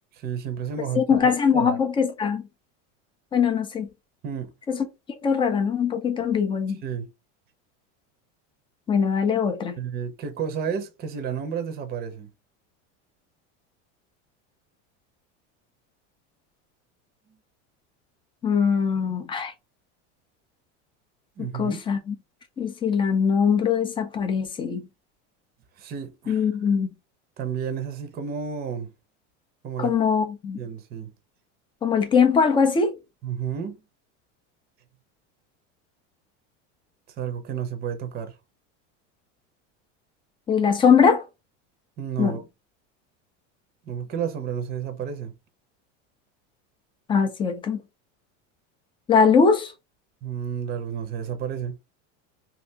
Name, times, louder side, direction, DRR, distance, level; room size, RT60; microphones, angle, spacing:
voice 1, 0.1-1.8 4.2-4.5 6.8-7.1 9.8-12.3 21.4-21.8 25.8-26.4 27.4-28.9 29.6-29.9 30.6-31.1 33.2-33.8 37.1-38.4 42.0-42.4 43.8-45.3 50.2-51.8, right 7 dB, 25° right, 0.6 m, -31 dB
voice 2, 0.9-2.4 3.3-3.9 4.7-4.8 5.2-6.8 8.9-9.7 18.4-19.5 21.4-22.1 22.6-24.8 26.3-26.9 29.8-30.6 31.8-32.9 40.5-41.2 42.2-42.4 47.1-47.8 49.1-49.7, left 6 dB, 15° left, 0.4 m, -21 dB
2.8 x 2.4 x 3.4 m
supercardioid pair, 140°, 37 cm